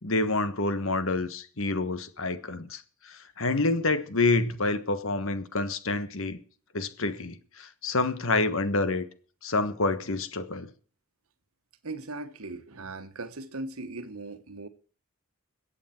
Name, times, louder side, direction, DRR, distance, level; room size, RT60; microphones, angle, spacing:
voice 1, 0.0-6.4 6.7-9.0 9.4-10.7, left 2 dB, 65° left, 1.4 m, -28 dB
voice 2, 11.8-14.7, right 2 dB, 75° right, 1.3 m, -38 dB
22.5 x 8.4 x 4.5 m
head